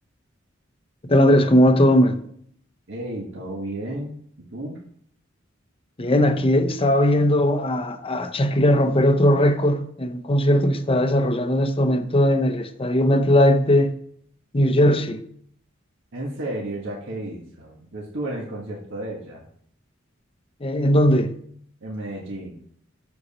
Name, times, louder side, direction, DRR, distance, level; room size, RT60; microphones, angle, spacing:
voice 1, 1.0-2.2 6.0-14.0 14.5-15.2 20.6-21.4, equal, 25° left, 0.7 m, -19 dB
voice 2, 2.9-4.2 4.5-4.8 16.1-19.5 21.8-22.6, right 1 dB, 65° right, 1.5 m, -32 dB
7.9 x 7.1 x 4.2 m
head